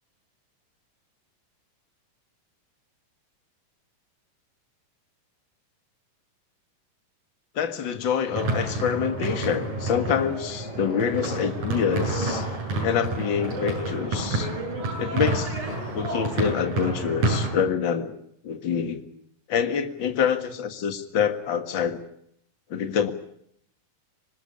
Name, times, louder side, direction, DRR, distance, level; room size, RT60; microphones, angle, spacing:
voice 1, 7.6-12.5 12.8-14.5 15.0-15.6 15.9-18.1 18.4-19.0 19.5-22.0 22.7-23.1, left 7 dB, 45° left, 8 dB, 2.0 m, -26 dB
sound 1, 8.3-17.5, right 2 dB, 60° right, 9.6 m, -29 dB
26.0 x 20.0 x 8.5 m, 0.70 s
omnidirectional pair, 3.8 m